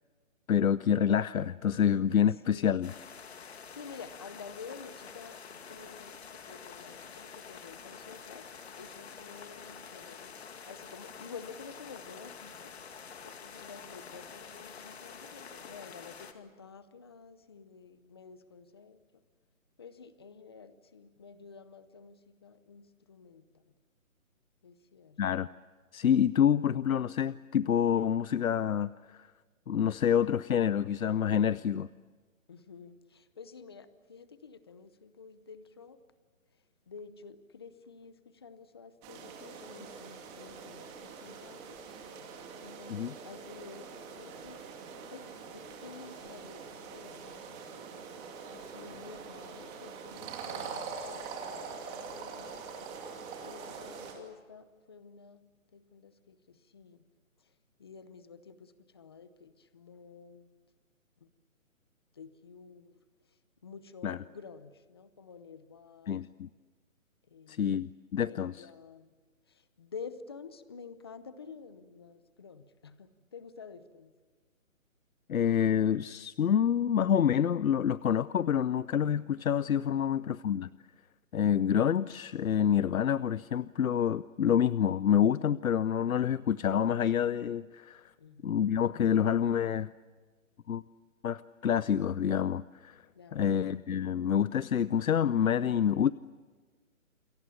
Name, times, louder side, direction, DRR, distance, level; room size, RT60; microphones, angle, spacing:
voice 1, 0.5-2.9 25.2-25.5 25.9-29.3 29.7-31.9 42.9-43.1 64.0-64.2 66.1-66.5 67.5-68.5 75.3-80.7 81.3-88.1 88.4-89.9 90.7-90.8 91.2-93.0 93.3-96.1, left 8 dB, 80° left, 18 dB, 0.7 m, -27 dB
voice 2, 2.5-2.9 3.4-8.5 8.8-19.2 19.8-23.7 24.6-25.2 32.5-36.0 36.5-41.8 42.6-43.9 44.2-44.6 45.1-47.9 48.5-52.7 53.4-57.0 57.4-57.5 57.8-60.5 61.2-61.3 62.1-63.0 63.3-66.5 67.3-67.9 68.2-69.1 69.5-74.1 88.2-88.7 93.1-93.6, left 5 dB, 20° left, 13 dB, 0.7 m, -50 dB
sound 1, 2.8-16.3, left 6 dB, 50° left, 2.5 m, -48 dB
sound 2, 39.0-54.1, right 5 dB, 15° right, 2.6 m, -44 dB
29.0 x 23.0 x 7.1 m, 1.5 s
hypercardioid pair, 165°, 41 cm